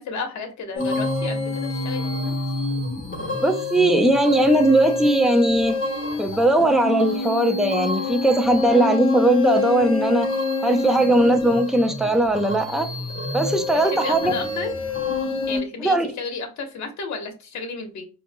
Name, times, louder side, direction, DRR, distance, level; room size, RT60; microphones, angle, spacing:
voice 1, 0.0-2.3 8.7-9.0 13.9-14.7 15.5-18.0, left 4 dB, 70° left, 1.1 m, -32 dB
sound 1, 0.7-15.6, left 3 dB, 45° left, 1.6 m, -27 dB
voice 2, 3.2-5.8 6.2-10.3 10.6-12.9 13.3-14.3 15.8-16.1, right 1 dB, ahead, 0.6 m, -19 dB
4.6 x 2.6 x 2.2 m
cardioid pair, 90°, 30 cm